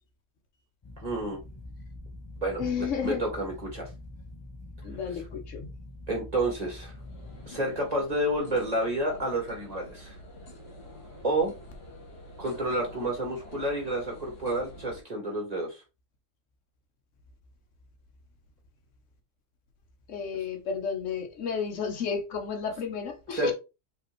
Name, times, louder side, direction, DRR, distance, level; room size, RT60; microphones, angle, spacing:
sound 1, 0.8-7.5, left 2 dB, 30° left, 0.6 m, -44 dB
voice 1, 1.0-1.4 2.4-3.9 6.1-6.9 7.5-10.1 11.2-11.5 12.4-15.8 23.3-23.5, right 1 dB, 30° right, 2.0 m, -30 dB
voice 2, 2.6-3.2 4.8-5.7 20.1-23.5, left 6 dB, 75° left, 1.2 m, -32 dB
sound 2, 6.3-15.0, left 1 dB, 55° left, 1.7 m, -47 dB
5.0 x 3.4 x 3.1 m
omnidirectional pair, 1.3 m